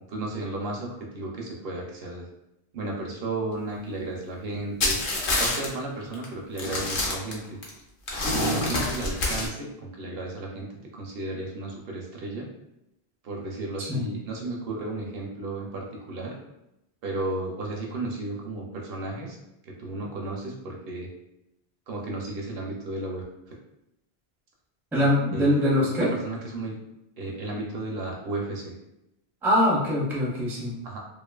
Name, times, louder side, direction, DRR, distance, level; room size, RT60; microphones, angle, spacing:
voice 1, 0.1-2.2 2.7-5.0 5.4-7.6 8.2-10.7 10.9-12.5 13.2-16.4 17.0-19.4 19.6-21.1 21.9-23.2 25.0-25.1 25.3-26.8 27.2-28.7 30.8-31.0, right 2 dB, 70° right, -1 dB, 0.7 m, -34 dB
sound 1, 4.8-5.7 6.1-6.3 6.6-7.7 8.1-9.5, left 2 dB, 60° left, 0.8 m, -26 dB
voice 2, 24.9-26.1 29.4-30.8, left 1 dB, 5° right, -5 dB, 0.4 m, -23 dB
2.6 x 2.4 x 2.2 m, 0.87 s
omnidirectional pair, 1.1 m